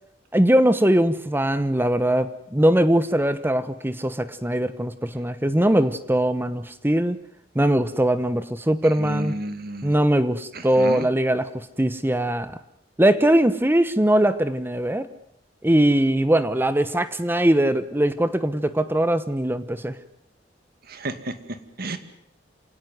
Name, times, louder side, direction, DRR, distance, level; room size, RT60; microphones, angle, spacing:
voice 1, 0.3-7.2 7.5-9.3 9.8-12.6 13.0-15.1 15.6-20.0, right 1 dB, 10° right, 13 dB, 1.0 m, -21 dB
voice 2, 9.0-9.9 10.5-11.1 20.8-22.0, right 1 dB, 60° right, 10 dB, 2.3 m, -32 dB
27.5 x 17.5 x 9.5 m, 0.77 s
head